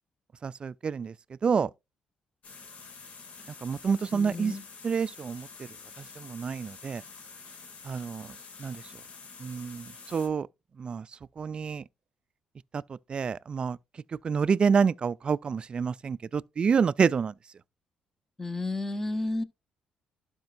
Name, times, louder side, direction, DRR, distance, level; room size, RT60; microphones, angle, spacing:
voice 1, 0.4-1.1 1.4-1.7 3.6-4.5 4.8-5.5 6.2-7.0 7.8-8.3 8.6-8.8 9.4-10.5 10.8-11.1 11.4-11.8 12.7-13.8 14.2-17.3, right 6 dB, 40° right, 0.4 m, -28 dB
sound 1, 2.4-10.3, left 5 dB, 60° left, 2.2 m, -48 dB
voice 2, 4.1-4.6 18.4-19.4, left 2 dB, 15° left, 1.0 m, -32 dB
12.0 x 5.1 x 2.6 m
cardioid pair, 80°, 3 cm